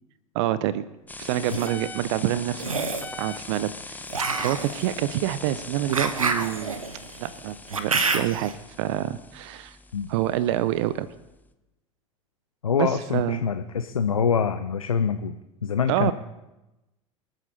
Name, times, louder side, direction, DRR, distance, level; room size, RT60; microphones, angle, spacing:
voice 1, 0.3-0.9 1.2-4.0 4.3-6.8 7.2-8.5 8.8-9.8 10.1-11.1 12.8-13.4 15.9-16.1, right 13 dB, 60° right, 17 dB, 0.7 m, -27 dB
sound 1, 1.1-11.5, left 3 dB, 10° left, 1.0 m, -41 dB
sound 2, 1.2-1.7 2.6-3.1 4.1-8.5, right 4 dB, 85° right, 1.0 m, -28 dB
voice 2, 12.6-15.3 15.6-16.1, left 6 dB, 85° left, 9 dB, 0.7 m, -25 dB
27.0 x 9.2 x 4.2 m, 0.99 s
figure-of-eight pair, 80°, 17 cm